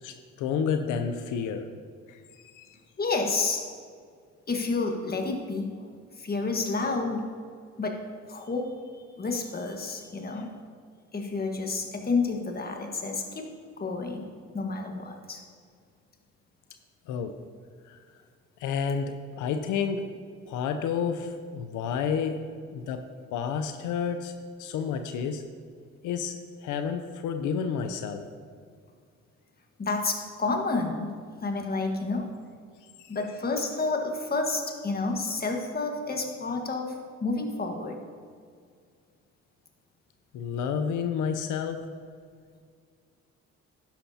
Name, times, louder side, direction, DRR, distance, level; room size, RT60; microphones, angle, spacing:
voice 1, 0.0-1.7 2.1-2.7 10.4-10.5 17.1-17.4 17.9-18.0 18.6-20.1 20.5-23.1 23.3-24.3 24.6-25.4 26.0-28.2 32.8-33.2 40.3-41.9, left 6 dB, 90° left, 8 dB, 0.7 m, -30 dB
voice 2, 3.0-3.6 4.5-5.9 6.2-7.3 7.8-8.0 8.3-10.5 11.1-13.5 13.8-15.4 29.8-31.1 31.4-32.3 33.1-38.0, left 3 dB, 30° left, 3 dB, 1.5 m, -30 dB
11.5 x 10.0 x 2.8 m, 2.1 s
cardioid pair, 90°, 30 cm